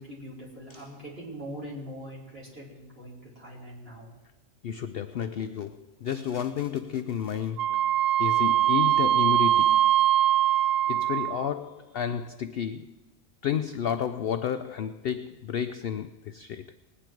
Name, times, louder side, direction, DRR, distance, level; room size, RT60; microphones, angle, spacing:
voice 1, 0.0-4.1, equal, 45° right, 4.7 m, -42 dB
voice 2, 4.6-7.8 8.2-9.9 10.9-12.9 13.4-16.7, left 8 dB, 65° left, 0.6 m, -31 dB
Wind instrument woodwind instrument, 7.6-11.5, right 12 dB, 75° right, 0.9 m, -22 dB
19.5 x 9.9 x 4.6 m
omnidirectional pair, 1.4 m